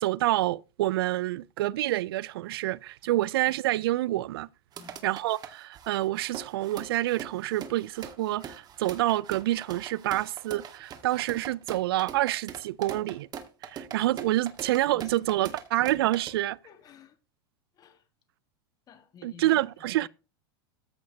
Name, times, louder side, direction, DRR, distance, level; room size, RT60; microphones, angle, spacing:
voice 1, 0.0-4.5 5.0-13.3 13.6-16.6 19.2-20.1, right 16 dB, 75° right, 0.4 m, -27 dB
sound 1, 4.7-16.3, right 8 dB, 30° right, 1.6 m, -42 dB
voice 2, 14.9-15.3 16.6-17.2 17.7-18.1 18.9-20.1, left 7 dB, 30° left, 1.5 m, -53 dB
14.0 x 6.3 x 2.8 m
hypercardioid pair, 120°, 13 cm